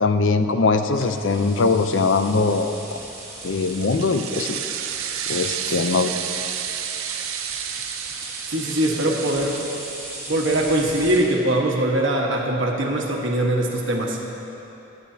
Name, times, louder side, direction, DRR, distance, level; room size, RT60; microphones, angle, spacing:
voice 1, 0.0-2.8 3.4-4.6 5.3-6.1, left 4 dB, 65° left, 8 dB, 0.5 m, -21 dB
sound 1, 0.9-11.2, right 2 dB, 15° right, 1.5 m, -37 dB
sound 2, 3.2-10.2, right 9 dB, 90° right, 0.6 m, -31 dB
voice 2, 8.5-9.6 10.3-14.2, right 1 dB, 65° right, 0 dB, 1.3 m, -22 dB
21.5 x 8.4 x 2.8 m, 3.0 s
head